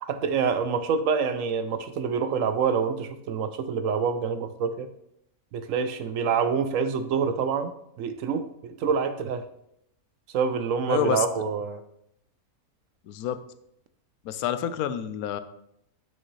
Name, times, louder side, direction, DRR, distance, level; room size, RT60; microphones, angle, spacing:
voice 1, 0.0-4.9 5.5-7.7 8.0-9.4 10.3-11.8, right 6 dB, 70° right, 10 dB, 0.9 m, -26 dB
voice 2, 10.9-11.2 13.1-13.4 14.2-15.4, left 10 dB, 85° left, 12 dB, 1.1 m, -28 dB
8.7 x 6.4 x 3.1 m, 0.76 s
omnidirectional pair, 1.5 m